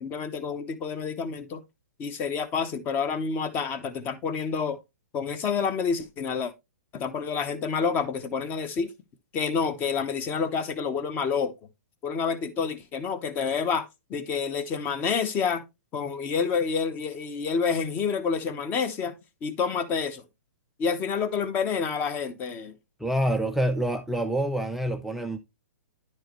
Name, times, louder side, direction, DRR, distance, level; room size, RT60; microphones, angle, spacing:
voice 1, 0.0-1.6 2.0-4.8 5.1-6.5 6.9-8.9 9.3-11.5 12.0-15.6 15.9-19.1 19.4-20.2 20.8-22.7, left 6 dB, 20° left, 0.9 m, -28 dB
voice 2, 23.0-25.4, right 1 dB, ahead, 0.4 m, -26 dB
10.5 x 4.8 x 3.0 m
hypercardioid pair, 155°, 9 cm